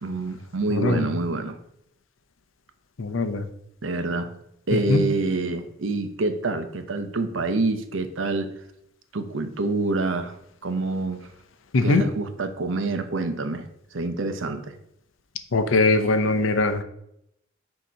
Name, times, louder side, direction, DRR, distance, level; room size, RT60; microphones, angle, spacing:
voice 1, 0.0-1.6 3.8-4.3 4.7-8.5 9.1-10.4 10.6-11.3 11.8-13.6 13.9-14.7, right 3 dB, 80° right, 8 dB, 0.7 m, -27 dB
voice 2, 3.0-3.4 4.9-5.0 11.7-12.0 15.5-16.8, left 2 dB, 85° left, 9 dB, 0.6 m, -21 dB
6.3 x 2.9 x 5.6 m, 0.76 s
head